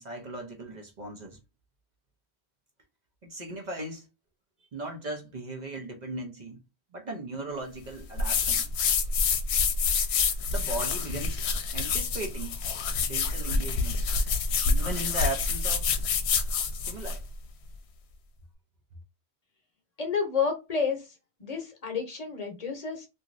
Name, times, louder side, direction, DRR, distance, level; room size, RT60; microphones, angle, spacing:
voice 1, 0.0-1.4 3.2-4.1 4.7-6.6 6.9-8.7 10.5-11.4 11.7-12.6 12.9-14.0 14.6-15.9 16.8-17.2, right 2 dB, 50° right, 0.7 m, -37 dB
sound 1, 8.2-17.2, left 5 dB, 80° left, 0.8 m, -27 dB
voice 2, 20.0-21.1 21.4-23.1, left 5 dB, 40° left, 0.9 m, -30 dB
2.9 x 2.6 x 2.5 m
omnidirectional pair, 1.1 m